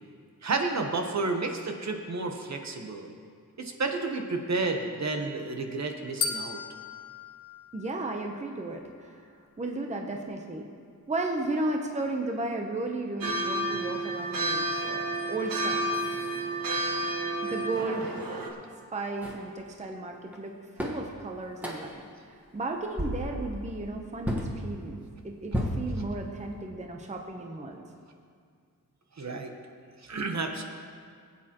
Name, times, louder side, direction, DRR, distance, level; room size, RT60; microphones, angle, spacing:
voice 1, 0.4-3.1 3.6-6.6 29.2-29.5 30.0-30.6, right 3 dB, 55° right, 4 dB, 1.0 m, -31 dB
sound 1, 6.2-8.5, left 5 dB, 60° left, 0.7 m, -36 dB
voice 2, 7.7-10.7 11.1-15.8 17.4-18.3 18.9-22.0 22.5-27.8, right 2 dB, 20° right, 2 dB, 0.7 m, -34 dB
sound 2, 13.2-18.5, right 1 dB, 80° right, 1.3 m, -30 dB
sound 3, 19.2-19.4 20.3-20.4 20.8-21.1 21.6-22.0 22.5-22.6 23.0-23.4 24.2-24.5 25.5-26.4, equal, 5° right, 1.3 m, -32 dB
20.5 x 8.7 x 2.9 m, 2.1 s
wide cardioid pair, 165°, 34 cm